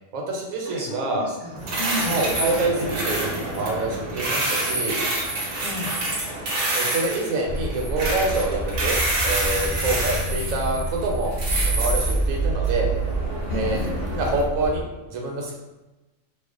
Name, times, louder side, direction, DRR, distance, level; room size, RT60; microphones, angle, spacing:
voice 1, 0.1-1.3 2.0-5.0 6.7-11.3 11.6-12.9 13.5-13.8 14.1-15.6, right 2 dB, 90° right, 0 dB, 1.0 m, -26 dB
voice 2, 0.6-2.2 5.6-6.0 13.5-14.0, equal, 30° left, -9 dB, 0.5 m, -33 dB
sound 1, 1.6-14.4, right 2 dB, 60° right, 0.6 m, -28 dB
sound 2, 7.4-14.8, right 2 dB, 65° left, 0.8 m, -27 dB
2.4 x 2.1 x 2.5 m, 1.1 s
omnidirectional pair, 1.4 m